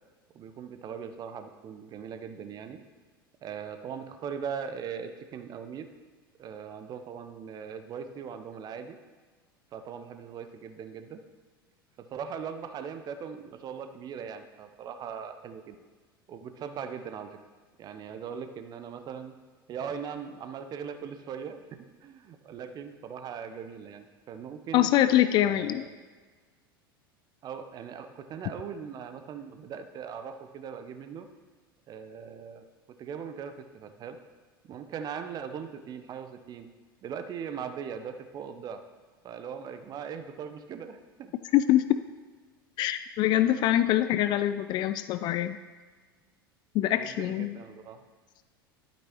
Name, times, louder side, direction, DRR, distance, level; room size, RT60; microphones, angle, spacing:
voice 1, 0.3-2.8 3.4-5.9 6.4-9.0 9.7-11.2 12.0-15.8 16.3-17.4 17.8-19.3 19.7-24.9 25.4-25.8 27.4-31.3 31.9-32.7 33.0-34.2 34.6-36.7 37.0-38.8 39.2-41.3 46.9-48.0, right 7 dB, 35° right, 8 dB, 0.8 m, -40 dB
voice 2, 24.7-25.8 41.5-42.0 42.8-45.6 46.7-47.6, left 13 dB, 35° left, 12 dB, 0.3 m, -24 dB
12.0 x 8.6 x 3.0 m, 1.4 s
figure-of-eight pair, 80°, 12 cm